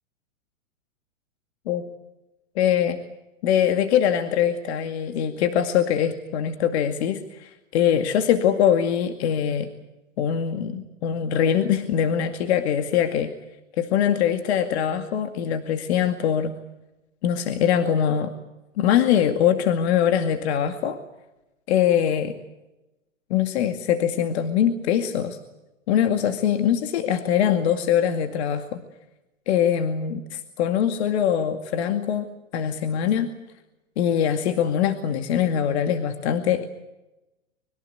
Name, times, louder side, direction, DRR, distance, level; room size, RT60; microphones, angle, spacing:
voice 1, 2.6-3.0 3.4-9.7 10.2-13.3 13.8-16.5 17.2-18.3 18.8-21.0 21.7-22.3 23.3-25.4 25.9-28.8 29.5-32.3 32.5-33.3 34.0-36.7, left 9 dB, 55° left, 7 dB, 2.3 m, -22 dB
25.0 x 23.0 x 8.1 m, 0.99 s
hypercardioid pair, 125°, 38 cm